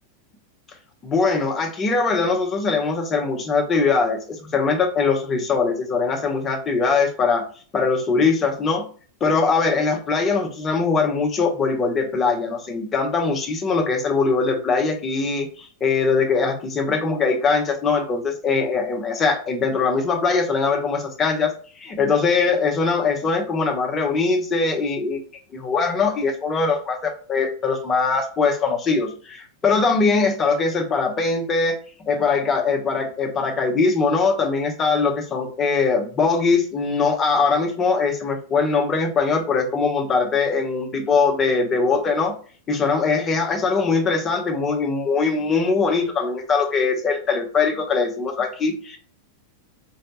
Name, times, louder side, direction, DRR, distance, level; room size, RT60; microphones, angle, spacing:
voice 1, 1.0-7.5 7.7-8.9 9.2-25.2 25.5-31.8 32.0-42.4 42.7-49.0, left 4 dB, 25° left, 2 dB, 1.0 m, -21 dB
4.8 x 3.3 x 2.8 m, 0.41 s
figure-of-eight pair, 90°, 0 cm